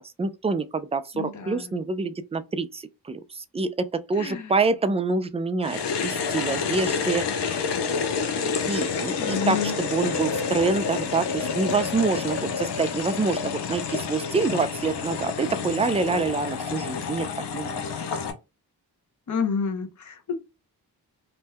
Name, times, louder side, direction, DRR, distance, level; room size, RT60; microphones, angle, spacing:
voice 1, 0.2-7.8 8.1-17.3 17.5-17.8, right 4 dB, 15° right, 0.3 m, -27 dB
voice 2, 1.1-1.8 4.1-4.6 9.2-9.7 19.3-20.3, left 6 dB, 45° left, 0.8 m, -29 dB
sound 1, 5.6-18.3, left 5 dB, 85° left, 0.7 m, -29 dB
2.6 x 2.2 x 3.4 m
cardioid pair, 70°, 40 cm